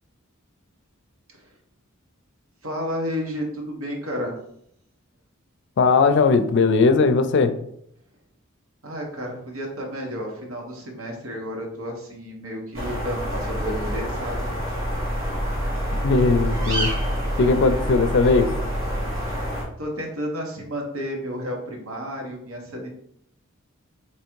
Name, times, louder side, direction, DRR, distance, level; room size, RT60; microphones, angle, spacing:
voice 1, 2.6-4.3 8.8-14.4 19.8-22.9, equal, 90° right, 1.2 m, -31 dB
voice 2, 5.8-7.6 16.0-16.9 17.4-18.6, left 4 dB, 60° left, 0.4 m, -18 dB
sound 1, 12.7-19.6, equal, 70° right, 1.9 m, -26 dB
3.5 x 3.0 x 4.5 m
head